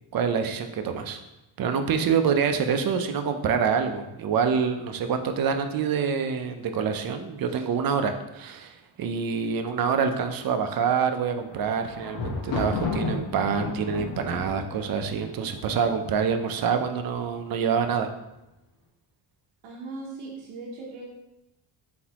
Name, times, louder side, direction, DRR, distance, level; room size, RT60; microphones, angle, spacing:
voice 1, 0.1-1.2 1.6-18.1, right 6 dB, 45° right, 8 dB, 0.6 m, -26 dB
Thunder, 11.3-16.3 17.0-17.5 17.8-17.9, left 3 dB, 65° left, 1.0 m, -33 dB
voice 2, 19.6-21.1, right 3 dB, 85° right, -2 dB, 0.9 m, -38 dB
4.0 x 3.5 x 2.9 m, 0.93 s
cardioid pair, 75°, 48 cm